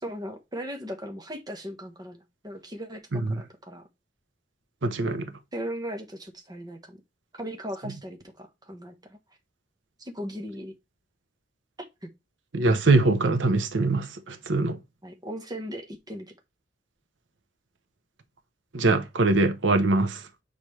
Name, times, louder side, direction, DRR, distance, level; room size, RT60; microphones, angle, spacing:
voice 1, 0.0-3.9 5.5-7.0 7.3-9.2 10.0-10.7 12.0-12.1 15.0-16.3, equal, 20° right, 1.2 m, -38 dB
voice 2, 4.8-5.3 12.5-14.8 18.7-20.3, right 2 dB, 85° right, 0.9 m, -23 dB
7.4 x 5.2 x 3.2 m
head